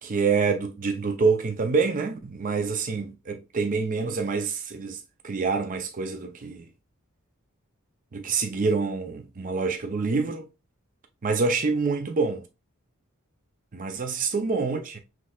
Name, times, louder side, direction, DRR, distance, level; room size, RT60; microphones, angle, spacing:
voice 1, 0.0-6.7 8.1-10.5 11.2-12.5 13.7-15.0, right 4 dB, 40° right, 0.5 m, -26 dB
6.0 x 3.2 x 2.3 m
head